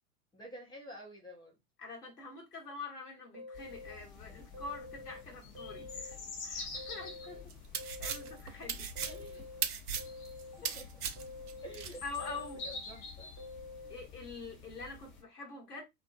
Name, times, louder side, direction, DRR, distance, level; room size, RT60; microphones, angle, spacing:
voice 1, 0.3-1.6 7.0-7.6 9.0-9.5 10.6-10.9 11.6-12.4 12.6-13.3, equal, 10° left, 0.4 m, -49 dB
voice 2, 1.8-6.2 6.4-7.1 7.8-8.9 10.6-10.8 12.0-12.6 13.9-15.8, left 4 dB, 90° left, 1.1 m, -45 dB
sound 1, 3.3-5.2 5.5-7.4 7.8-9.6 10.0-11.8 12.2-14.1, left 3 dB, 25° right, 0.7 m, -49 dB
sound 2, 3.5-15.2, left 4 dB, 40° left, 0.8 m, -48 dB
sound 3, 7.5-12.0, right 7 dB, 85° right, 0.6 m, -38 dB
2.5 x 2.1 x 2.4 m
figure-of-eight pair, 95°, 45 cm